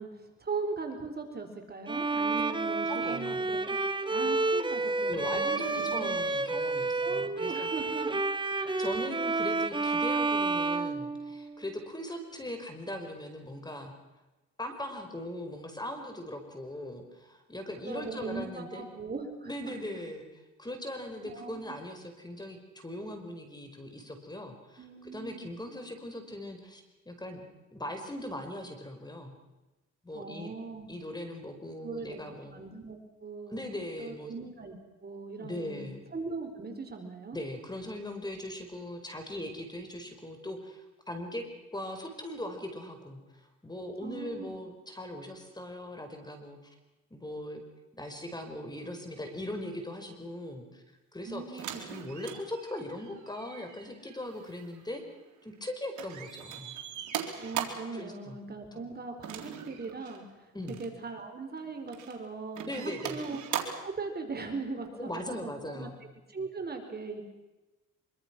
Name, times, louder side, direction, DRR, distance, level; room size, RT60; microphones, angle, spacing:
voice 1, 0.0-3.8 4.1-6.3 7.0-8.2 8.5-8.8 17.8-19.8 21.3-21.7 24.8-25.5 30.1-30.9 31.8-37.4 44.0-44.6 51.2-51.8 57.4-63.4 63.8-65.9 66.3-67.2, right 4 dB, 30° right, 4 dB, 4.5 m, -40 dB
Bowed string instrument, 1.9-11.7, right 3 dB, 15° right, 1.4 m, -30 dB
voice 2, 2.8-3.4 5.0-7.7 8.8-13.9 14.6-18.9 19.4-20.2 20.6-29.3 30.0-30.5 30.9-32.5 33.5-34.3 35.4-36.0 37.3-41.4 41.7-46.7 47.1-47.6 47.9-50.8 51.1-55.0 55.4-56.8 57.9-58.4 58.7-58.9 60.5-60.8 62.6-63.2 64.9-65.9, left 1 dB, 15° left, 5 dB, 5.1 m, -40 dB
sound 1, 51.6-55.7 56.0-58.0 59.2-60.2 60.6-60.9 61.6-62.2 62.5-64.0 65.1-65.2, right 9 dB, 75° right, 3.6 m, -40 dB
25.0 x 24.5 x 6.2 m, 1.1 s
cardioid pair, 90°, 30 cm